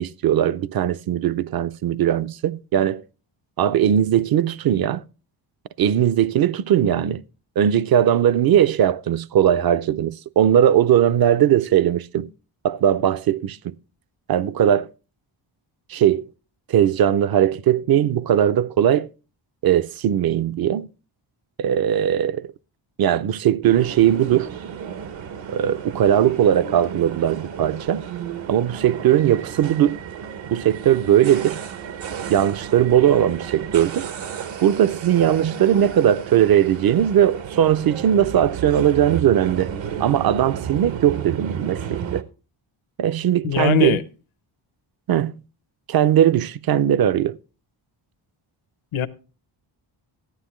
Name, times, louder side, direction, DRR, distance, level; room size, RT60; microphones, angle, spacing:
voice 1, 0.0-3.0 3.6-5.0 5.8-7.2 7.6-12.3 12.6-13.7 14.3-14.9 15.9-16.2 16.7-19.1 19.6-20.9 21.6-22.5 23.0-24.5 25.5-28.0 28.5-30.0 30.5-31.6 32.3-34.1 34.6-39.7 40.0-42.3 43.0-44.0 45.1-45.3 45.9-47.4, right 10 dB, 50° right, 0.5 m, -19 dB
sound 1, 23.6-42.2, right 7 dB, 65° right, 0.9 m, -33 dB
voice 2, 43.4-44.0 48.9-49.1, left 11 dB, 75° left, 0.8 m, -21 dB
14.0 x 9.5 x 3.0 m
cardioid pair, 85°, 49 cm